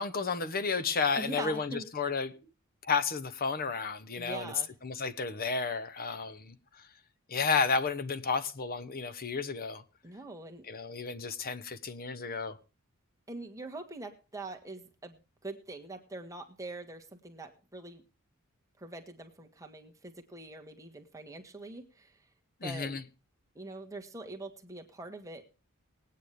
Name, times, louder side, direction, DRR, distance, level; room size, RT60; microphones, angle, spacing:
voice 1, 0.0-2.3 2.8-4.5 4.8-6.5 7.3-9.8 10.7-12.6 22.6-23.0, left 5 dB, 40° left, 1.0 m, -32 dB
voice 2, 1.2-1.9 4.2-4.7 10.0-10.6 13.3-18.0 18.8-22.1 22.6-22.9 23.5-25.4, right 2 dB, 15° right, 1.6 m, -43 dB
20.0 x 9.3 x 3.3 m
head